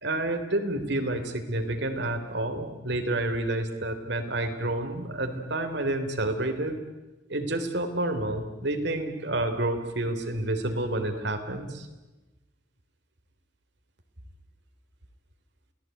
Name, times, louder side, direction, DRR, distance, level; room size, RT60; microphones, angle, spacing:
voice 1, 0.0-6.7 7.3-11.9, right 1 dB, 65° right, 6 dB, 3.3 m, -29 dB
29.0 x 18.0 x 9.1 m, 1.1 s
head